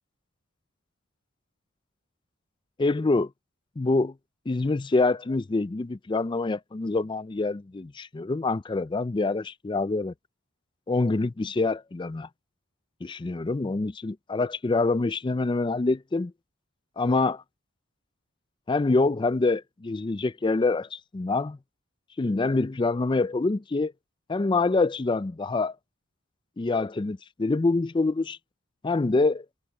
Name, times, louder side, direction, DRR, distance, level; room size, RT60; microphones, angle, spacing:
voice 1, 2.8-3.3 3.8-4.1 4.5-10.1 10.9-12.3 13.0-16.3 17.0-17.4 18.7-21.6 22.2-23.9 24.3-25.8 26.6-28.4 28.8-29.5, left 3 dB, 20° left, 0.4 m, -26 dB
head